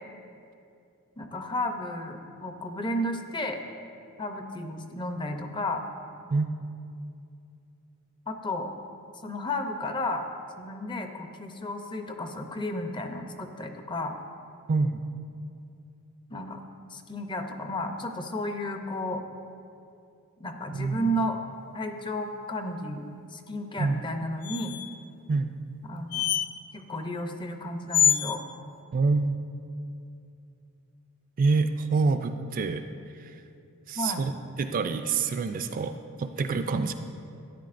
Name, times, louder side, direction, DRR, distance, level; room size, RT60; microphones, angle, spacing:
voice 1, 1.2-3.6 4.2-5.8 8.3-8.7 9.2-10.3 10.6-14.2 16.3-16.6 16.9-19.2 20.4-21.4 21.7-23.0 23.3-24.8 25.8-26.3 26.7-28.4 34.0-34.2, left 1 dB, 20° left, 5 dB, 0.5 m, -32 dB
voice 2, 14.7-15.0 20.7-21.0 23.8-24.0 25.3-25.5 28.9-29.3 31.4-32.8 33.2-33.3 33.9-34.3 34.6-36.9, right 4 dB, 40° right, 8 dB, 0.3 m, -26 dB
sound 1, 24.4-25.0 26.1-26.5 27.9-28.4, left 9 dB, 80° left, 0.4 m, -25 dB
13.0 x 9.9 x 2.5 m, 2.5 s
head